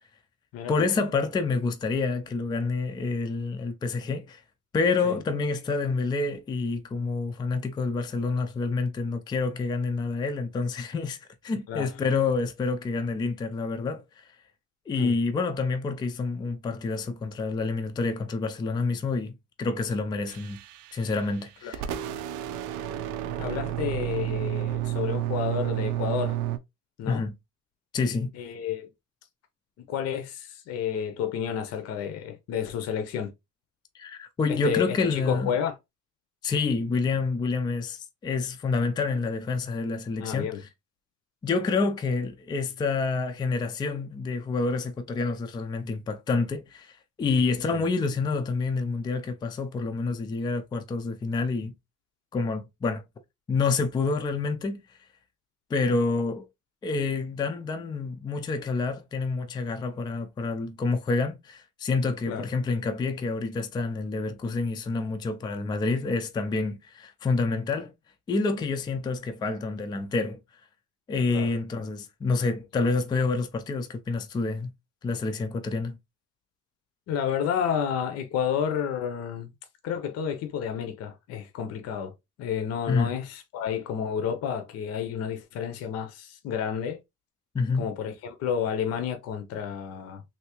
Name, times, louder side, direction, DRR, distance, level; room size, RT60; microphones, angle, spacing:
voice 1, 0.7-4.4 4.7-11.2 11.4-14.2 14.9-20.6 20.9-21.9 27.1-27.3 27.9-28.3 33.9-35.5 36.4-40.5 41.4-51.7 52.3-53.0 53.5-54.8 55.7-56.5 56.8-67.9 68.3-70.4 71.1-74.7 75.0-76.0 82.9-83.2 87.5-87.9, left 4 dB, 15° left, 0.3 m, -28 dB
sound 1, 20.3-21.4 21.7-26.6, right 12 dB, 80° right, 0.6 m, -31 dB
voice 2, 23.4-26.4 27.0-27.2 28.3-28.9 29.9-33.3 34.5-35.8 40.2-40.6 47.7-47.8 62.3-62.5 71.3-71.5 77.1-79.5 79.8-82.1 82.4-87.0 87.7-90.2, left 8 dB, 55° left, 0.6 m, -30 dB
3.4 x 2.7 x 2.9 m
cardioid pair, 160°, 30 cm